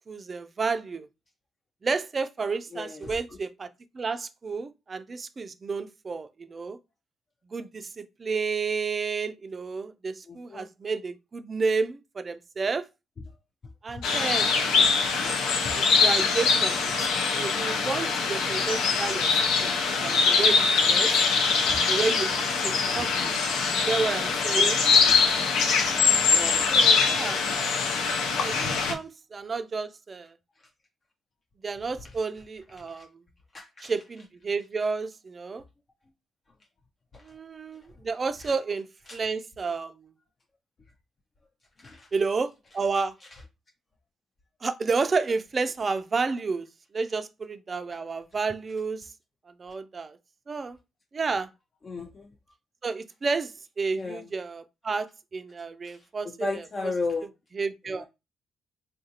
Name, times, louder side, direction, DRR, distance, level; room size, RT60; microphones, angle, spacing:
voice 1, 0.1-1.1 1.8-3.7 3.9-6.8 7.5-12.9 13.8-14.6 15.7-19.7 20.0-21.3 21.9-23.3 23.9-24.8 26.7-27.4 28.4-30.3 31.6-33.2 33.8-35.6 37.2-38.9 39.1-40.0 42.1-43.1 44.6-46.7 46.9-49.1 49.6-50.2 50.5-50.8 51.1-51.5 52.8-56.9 57.6-58.0, right 4 dB, 35° right, 0.4 m, -31 dB
voice 2, 2.7-3.2 10.3-10.7 13.9-14.0 14.7-14.9 23.0-23.1 25.1-25.2 26.3-26.7 32.9-33.1 33.5-33.9 37.1-37.2 39.1-39.2 41.8-42.1 51.8-52.3 53.9-54.3 55.9-56.0 56.4-57.3 57.9-58.0, left 3 dB, 35° left, 0.5 m, -35 dB
sound 1, 14.0-28.9, left 5 dB, 90° left, 0.5 m, -23 dB
3.6 x 2.4 x 2.7 m
cardioid pair, 90°, 0 cm